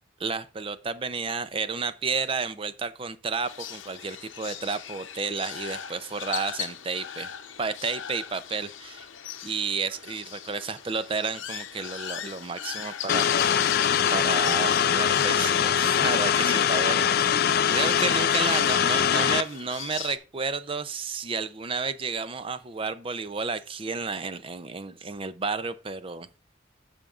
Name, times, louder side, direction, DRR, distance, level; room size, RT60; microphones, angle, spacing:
voice 1, 0.2-7.3 7.6-9.1 9.4-13.3 14.1-17.4 17.7-26.3, right 4 dB, 30° right, 0.5 m, -31 dB
sound 1, 3.4-20.2, left 9 dB, 80° left, 0.7 m, -38 dB
sound 2, 13.1-19.4, left 8 dB, 50° left, 0.4 m, -22 dB
14.5 x 5.2 x 2.4 m
head